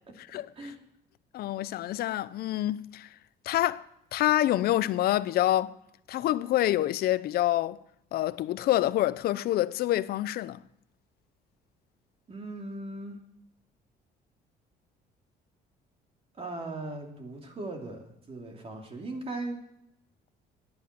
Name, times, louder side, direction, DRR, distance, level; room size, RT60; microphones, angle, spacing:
voice 1, 0.2-0.7 1.3-3.1 3.5-3.8 4.1-5.7 6.1-7.8 8.1-10.6, left 14 dB, 65° left, 0.6 m, -27 dB
voice 2, 12.3-13.2 16.4-19.6, right 2 dB, 35° right, 2.9 m, -38 dB
11.0 x 9.8 x 8.6 m
cardioid pair, 110°, 17 cm